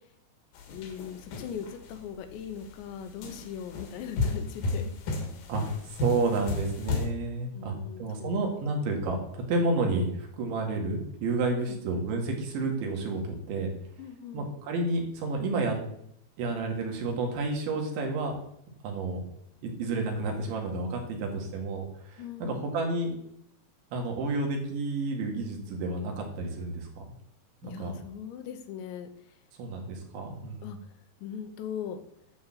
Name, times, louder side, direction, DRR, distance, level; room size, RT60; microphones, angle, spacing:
sound 1, 0.6-1.9 2.5-2.7 3.2-7.1, left 3 dB, 60° left, 2.8 m, -32 dB
voice 1, 0.7-4.9 7.5-8.4 11.6-11.8 14.0-14.5 22.2-22.6 27.6-29.4 30.6-32.0, left 8 dB, 80° left, 8 dB, 3.2 m, -40 dB
voice 2, 5.5-13.7 14.3-15.8 16.4-18.4 18.8-19.2 19.6-23.2 23.9-27.0 27.6-27.9 29.6-30.7, right 3 dB, 80° right, 1 dB, 4.4 m, -30 dB
12.0 x 4.7 x 7.5 m, 0.73 s
omnidirectional pair, 5.3 m